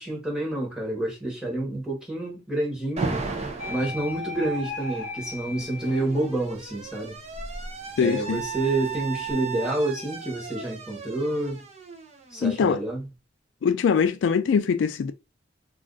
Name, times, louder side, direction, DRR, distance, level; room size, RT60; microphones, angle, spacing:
voice 1, 0.0-3.2 3.7-7.2 8.0-11.6 12.3-13.1, right 2 dB, 5° right, 1.1 m, -28 dB
Alarm, 3.0-3.9 5.2-12.9, right 4 dB, 35° right, 0.5 m, -35 dB
sound 1, 3.6-6.5 6.9-9.3, left 1 dB, 45° left, 1.0 m, -37 dB
voice 2, 8.0-8.4 12.4-12.8 13.6-15.1, left 6 dB, 75° left, 0.3 m, -22 dB
2.4 x 2.4 x 3.7 m
head